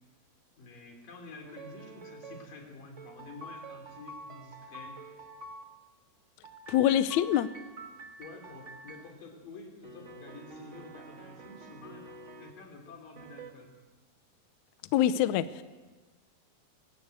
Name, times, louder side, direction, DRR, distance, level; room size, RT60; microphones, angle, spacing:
voice 1, 0.6-5.0 8.2-12.0 12.4-13.7, left 3 dB, 60° left, 2 dB, 5.1 m, -49 dB
sound 1, 1.4-2.4 3.0-5.6 6.4-9.1 9.8-12.5 13.1-13.5, right 2 dB, 60° right, 0.7 m, -47 dB
voice 2, 6.7-7.5 14.9-15.5, left 11 dB, 85° left, 13 dB, 1.6 m, -24 dB
22.5 x 18.0 x 8.1 m, 1.3 s
omnidirectional pair, 4.4 m